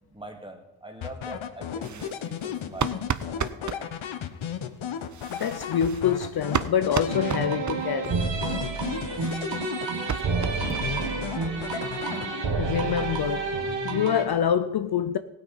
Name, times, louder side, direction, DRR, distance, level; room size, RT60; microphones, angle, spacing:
voice 1, 0.0-4.0 4.6-4.7 5.5-5.6 9.9-11.9, right 1 dB, 10° right, 2.1 m, -43 dB
sound 1, 1.0-7.9 8.2-10.2 10.6-12.7, left 8 dB, 75° left, 0.9 m, -34 dB
sound 2, 1.8-3.8 5.0-8.1 8.4-8.5 8.8-8.9 9.1-11.2 11.4-11.6 11.9-12.0 12.3-12.4 12.7-13.5, right 7 dB, 40° right, 0.6 m, -34 dB
voice 2, 5.3-8.2 8.8-9.3 10.4-10.5 12.0-13.6 13.8-15.2, left 8 dB, 55° left, 0.6 m, -27 dB
sound 3, 7.1-14.2, right 4 dB, 65° right, 1.7 m, -29 dB
16.0 x 9.1 x 4.1 m
cardioid pair, 60°, 47 cm